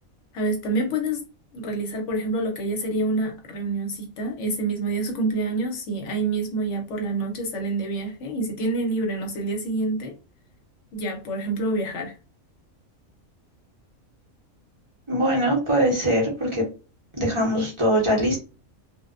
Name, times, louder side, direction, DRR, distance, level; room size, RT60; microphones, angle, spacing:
voice 1, 0.3-1.3 1.5-10.2 10.9-12.1, right 2 dB, 65° left, 1.0 m, -27 dB
voice 2, 15.1-16.6 17.1-18.4, equal, 25° right, 0.8 m, -22 dB
2.5 x 2.1 x 2.4 m
omnidirectional pair, 1.4 m